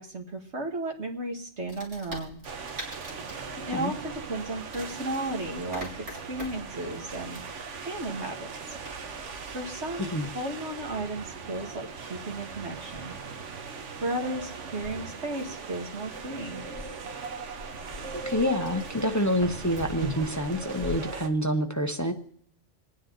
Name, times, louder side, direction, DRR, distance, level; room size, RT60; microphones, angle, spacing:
voice 1, 0.0-2.4 3.6-7.4 7.9-8.5 9.5-13.2 14.0-16.7 20.0-20.1, right 1 dB, 70° right, 1 dB, 2.0 m, -34 dB
Wood, 1.7-21.0, left 2 dB, 55° right, 4.0 m, -46 dB
sound 1, 2.4-21.3, right 5 dB, 90° right, 1.3 m, -40 dB
voice 2, 18.1-22.1, equal, 20° left, 6 dB, 0.6 m, -27 dB
26.5 x 9.5 x 3.9 m, 0.64 s
omnidirectional pair, 1.2 m